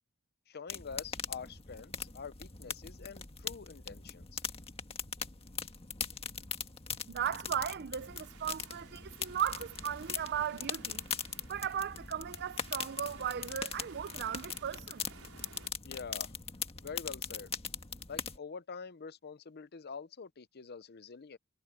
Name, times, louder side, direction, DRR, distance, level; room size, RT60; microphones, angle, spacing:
voice 1, 0.5-4.4 15.8-16.3 16.8-17.5 18.1-21.4, left 5 dB, 50° left, 0.7 m, -46 dB
sound 1, 0.7-18.4, left 6 dB, 30° left, 1.6 m, -41 dB
voice 2, 7.1-11.0 11.5-15.1, right 9 dB, 50° right, 0.5 m, -37 dB
sound 2, 8.0-15.7, right 5 dB, 85° right, 5.2 m, -56 dB
head